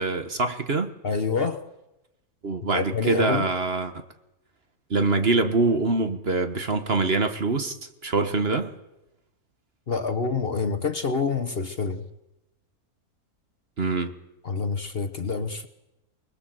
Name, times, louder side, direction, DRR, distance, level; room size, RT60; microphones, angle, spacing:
voice 1, 0.0-0.9 2.4-4.0 4.9-7.8 8.0-8.7 13.8-14.1, right 3 dB, 40° right, 1.6 m, -24 dB
voice 2, 1.0-1.6 2.7-3.5 9.9-12.1 14.4-15.7, left 4 dB, 45° left, 1.2 m, -27 dB
24.5 x 21.0 x 7.8 m
omnidirectional pair, 1.6 m